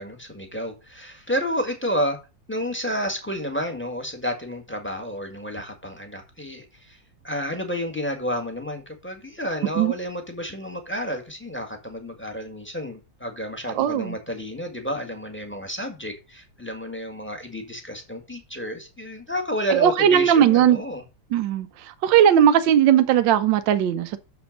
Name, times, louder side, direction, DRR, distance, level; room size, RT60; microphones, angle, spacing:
voice 1, 0.0-2.2 2.5-7.0 7.2-21.0, equal, 5° left, 1.6 m, -30 dB
voice 2, 13.7-14.1 19.7-20.8 21.3-21.7 22.0-24.2, right 9 dB, 80° right, 1.4 m, -18 dB
6.8 x 6.1 x 5.2 m
omnidirectional pair, 2.0 m